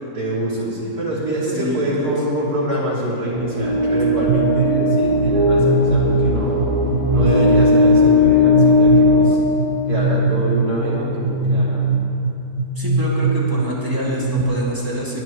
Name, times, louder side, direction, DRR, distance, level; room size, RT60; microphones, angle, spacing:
voice 1, 0.1-6.6 7.1-9.4 9.9-11.9, right 1 dB, 80° right, -7 dB, 3.7 m, -25 dB
voice 2, 1.5-2.1 12.8-15.2, equal, 15° right, -6 dB, 2.3 m, -26 dB
sound 1, 3.3-10.3, left 2 dB, 35° left, 2.0 m, -17 dB
sound 2, 4.3-14.4, right 3 dB, 60° right, 1.1 m, -22 dB
20.5 x 11.5 x 3.1 m, 3.0 s
omnidirectional pair, 1.6 m